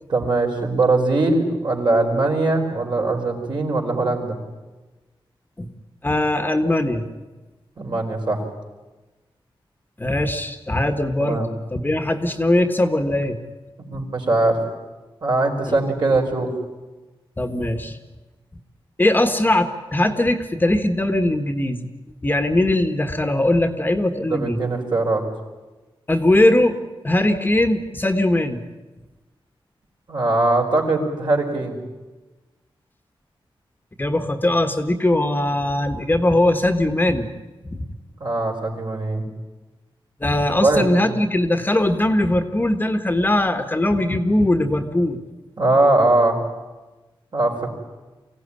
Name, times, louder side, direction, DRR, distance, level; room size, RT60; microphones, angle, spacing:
voice 1, 0.1-4.4 7.8-8.4 11.2-11.5 13.8-14.6 15.2-16.5 24.3-25.3 30.1-31.8 38.2-39.3 40.6-40.8 45.6-46.4 47.3-47.7, right 2 dB, 55° right, 1 dB, 4.6 m, -21 dB
voice 2, 6.0-7.0 10.0-11.4 11.7-13.4 15.7-15.8 17.4-18.0 19.0-21.9 22.2-24.6 26.1-26.8 27.0-28.6 34.0-37.3 37.6-37.8 40.2-45.2, left 1 dB, 20° left, 7 dB, 1.4 m, -20 dB
24.0 x 16.0 x 9.8 m, 1.2 s
wide cardioid pair, 110°, 9 cm